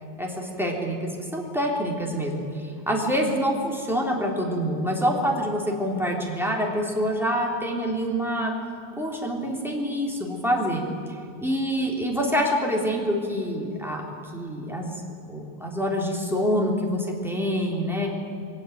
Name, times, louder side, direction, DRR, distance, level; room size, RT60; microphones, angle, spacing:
voice 1, 0.2-8.5 9.0-14.0 14.3-14.9 15.3-18.1, equal, ahead, -1 dB, 1.5 m, -26 dB
22.5 x 19.0 x 9.2 m, 2.6 s
omnidirectional pair, 5.7 m